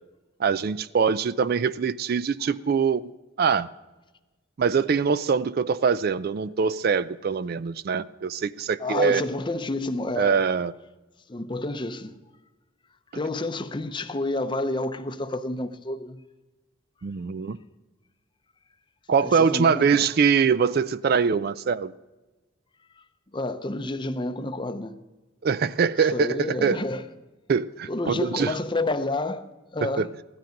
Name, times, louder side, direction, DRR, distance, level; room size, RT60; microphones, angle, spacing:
voice 1, 0.4-3.0 3.4-3.7 4.6-9.2 10.2-10.7 17.0-17.6 19.1-21.9 25.4-26.8 27.5-28.6 29.8-30.1, right 6 dB, 50° right, 0.4 m, -23 dB
voice 2, 8.8-10.4 11.3-12.2 13.1-16.2 19.2-20.1 23.3-25.0 26.1-27.0 27.9-29.5 29.7-30.1, left 2 dB, 25° left, 0.6 m, -29 dB
15.5 x 12.0 x 5.2 m
head